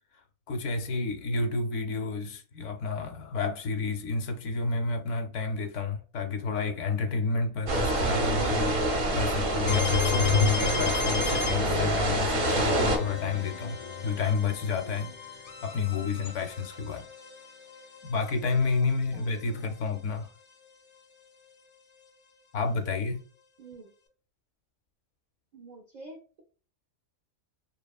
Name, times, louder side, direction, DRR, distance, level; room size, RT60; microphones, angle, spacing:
voice 1, 0.5-8.8 9.1-15.1 15.6-17.1 18.0-20.3 22.5-23.2, left 4 dB, 75° left, 0.9 m, -30 dB
sound 1, 7.7-13.0, right 2 dB, 55° right, 0.8 m, -27 dB
sound 2, 9.7-19.4, left 6 dB, 55° left, 0.5 m, -32 dB
voice 2, 23.6-23.9 25.5-26.4, right 2 dB, 85° right, 0.4 m, -47 dB
2.8 x 2.4 x 2.2 m
omnidirectional pair, 1.3 m